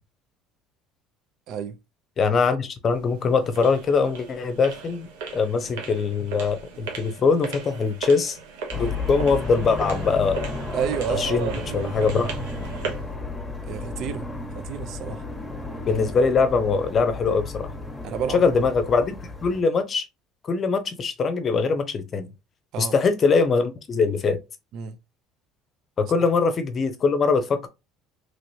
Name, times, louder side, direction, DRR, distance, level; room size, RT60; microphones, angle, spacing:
voice 1, 1.5-1.8 10.7-12.3 13.7-14.3 14.5-15.2 18.0-18.6 22.7-22.9 24.7-25.0 26.2-26.3, right 8 dB, 60° right, 0.4 m, -30 dB
voice 2, 2.2-8.4 8.7-10.5 11.2-12.3 15.8-17.7 18.3-19.2 19.4-20.0 20.4-22.3 22.8-24.4 26.0-27.7, left 4 dB, 40° left, 0.7 m, -22 dB
sound 1, 2.9-13.1, right 4 dB, 85° right, 0.8 m, -37 dB
sound 2, 8.7-19.6, left 3 dB, 15° left, 1.1 m, -33 dB
3.1 x 2.9 x 2.7 m
supercardioid pair, 80°, 0 cm